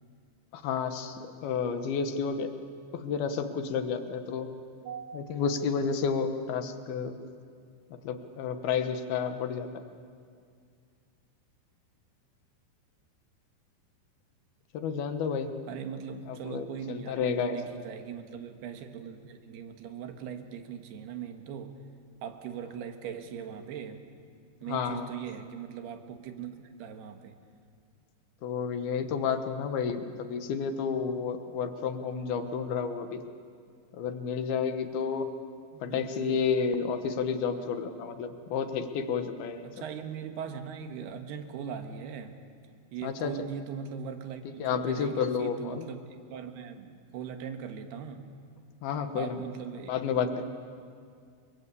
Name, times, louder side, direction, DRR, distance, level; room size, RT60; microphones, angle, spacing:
voice 1, 0.5-2.5 2.9-4.5 5.1-7.2 8.0-9.7 14.7-15.5 16.3-17.6 24.7-25.1 28.4-33.2 33.9-35.3 35.8-39.7 43.0-43.3 44.6-45.8 48.8-49.4 49.9-50.3, left 6 dB, 65° left, 7 dB, 2.8 m, -31 dB
voice 2, 4.8-5.2 15.7-21.8 22.2-24.0 24.6-27.4 35.7-36.4 39.6-42.4 42.9-48.3 49.2-50.4, right 7 dB, 65° right, 6 dB, 3.2 m, -40 dB
29.5 x 24.0 x 8.4 m, 2.2 s
omnidirectional pair, 5.4 m